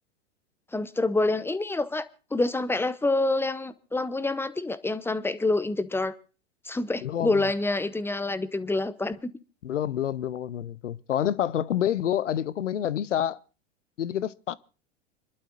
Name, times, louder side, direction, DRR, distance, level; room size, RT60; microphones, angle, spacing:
voice 1, 0.7-6.1 6.6-9.2, left 2 dB, 5° left, 0.7 m, -27 dB
voice 2, 7.0-7.5 9.6-13.4 14.0-14.6, left 10 dB, 80° left, 0.8 m, -28 dB
29.5 x 12.0 x 2.5 m
hypercardioid pair, 95°, 36 cm